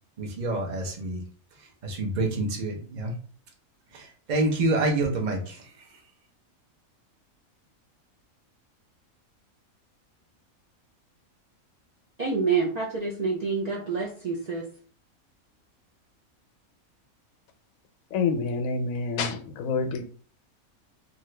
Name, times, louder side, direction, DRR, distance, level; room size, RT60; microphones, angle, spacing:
voice 1, 0.2-1.2 1.6-3.1 3.9-6.0, right 2 dB, 40° right, 2 dB, 0.7 m, -28 dB
voice 2, 12.2-14.7, right 5 dB, 70° right, -3 dB, 0.3 m, -27 dB
voice 3, 18.1-20.1, left 4 dB, 75° left, 8 dB, 1.0 m, -27 dB
2.8 x 2.4 x 3.2 m, 0.42 s
omnidirectional pair, 1.5 m